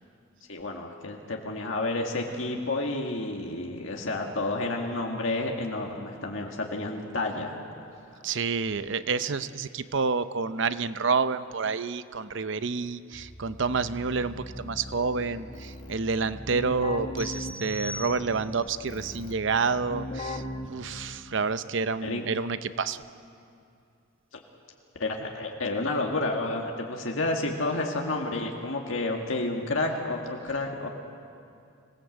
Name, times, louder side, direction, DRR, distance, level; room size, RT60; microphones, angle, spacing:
voice 1, 0.5-7.5 22.0-22.2 25.0-30.9, left 2 dB, 75° left, 1 dB, 2.0 m, -30 dB
voice 2, 8.2-23.0, right 4 dB, 65° right, 12 dB, 0.7 m, -29 dB
Keyboard (musical), 13.1-21.4, left 1 dB, 40° left, 1.5 m, -39 dB
sound 1, 17.2-18.7, left 1 dB, 5° left, 2.3 m, -40 dB
26.0 x 18.0 x 8.0 m, 2.5 s
head